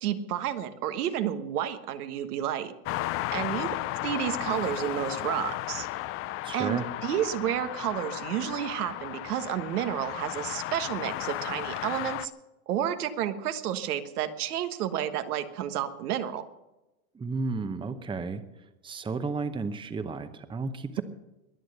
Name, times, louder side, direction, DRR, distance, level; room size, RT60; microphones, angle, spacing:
voice 1, 0.0-2.7 3.3-3.7 4.0-5.9 6.5-12.3 12.7-16.4, right 10 dB, 85° right, 9 dB, 1.4 m, -31 dB
sound 1, 2.9-12.3, left 16 dB, 30° left, 0.4 m, -34 dB
voice 2, 6.4-6.8 17.1-18.4 18.8-21.0, right 4 dB, 10° right, 10 dB, 0.8 m, -33 dB
22.0 x 7.8 x 6.6 m, 0.99 s
supercardioid pair, 125°, 44 cm